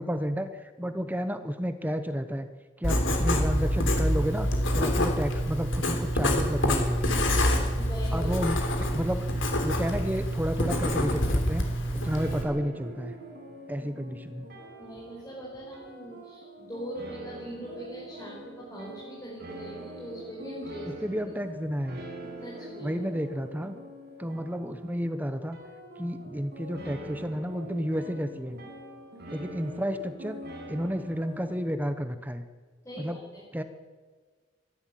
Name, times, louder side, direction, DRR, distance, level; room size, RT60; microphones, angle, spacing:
voice 1, 0.0-2.5 2.8-4.5 4.7-7.1 8.1-9.2 9.6-11.7 12.0-13.1 13.7-14.5 20.9-22.0 22.8-23.7 24.2-25.6 26.0-28.6 29.3-30.4 30.7-32.4 33.0-33.2 33.5-33.6, equal, 10° right, 9 dB, 0.9 m, -31 dB
Writing, 2.8-12.4, equal, 85° left, 3.5 m, -26 dB
voice 2, 7.7-8.4 14.8-20.9 22.4-23.0 32.8-33.4, right 1 dB, 15° left, -5 dB, 5.2 m, -41 dB
sound 1, 12.0-31.6, equal, 55° right, 5.7 m, -44 dB
25.5 x 11.5 x 9.2 m, 1.5 s
head